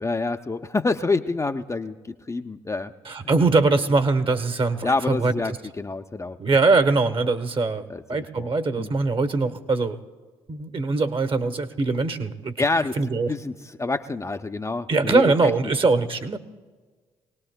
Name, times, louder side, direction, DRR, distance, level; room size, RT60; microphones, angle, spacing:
voice 1, 0.0-2.9 4.8-6.4 7.9-8.5 8.8-8.9 12.6-13.0 13.3-15.7, left 3 dB, 20° left, 6 dB, 0.6 m, -27 dB
voice 2, 3.1-5.3 6.4-7.8 8.1-10.0 10.5-12.5 13.0-13.3 14.9-16.4, right 3 dB, 35° right, 10 dB, 1.1 m, -22 dB
24.0 x 18.5 x 2.2 m, 1.4 s
hypercardioid pair, 45°, 15 cm